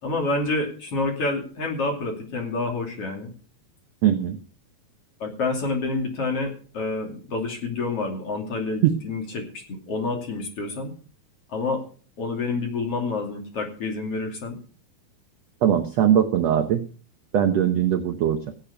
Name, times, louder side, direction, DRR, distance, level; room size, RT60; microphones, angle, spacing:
voice 1, 0.0-3.3 5.2-10.9 11.5-11.8 12.2-14.6, left 3 dB, 40° left, 2 dB, 3.4 m, -28 dB
voice 2, 4.0-4.4 15.6-16.8 17.3-18.4, right 10 dB, 75° right, 7 dB, 1.5 m, -21 dB
17.0 x 8.6 x 5.1 m, 0.40 s
omnidirectional pair, 4.2 m